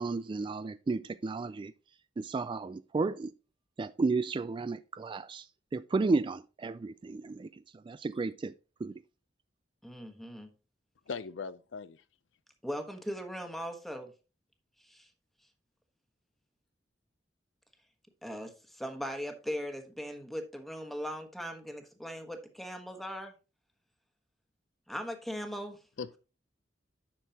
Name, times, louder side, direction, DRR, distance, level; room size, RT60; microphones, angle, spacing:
voice 1, 0.0-1.7 2.2-3.3 3.8-5.4 5.7-7.5 7.9-8.5 8.8-8.9, right 3 dB, 25° right, 0.3 m, -32 dB
voice 2, 9.8-10.5 12.6-14.1 14.8-15.1 18.2-23.3 24.9-25.8, equal, ahead, 1.3 m, -39 dB
voice 3, 11.1-12.0 26.0-26.2, left 5 dB, 85° left, 0.5 m, -39 dB
10.0 x 6.4 x 2.8 m
head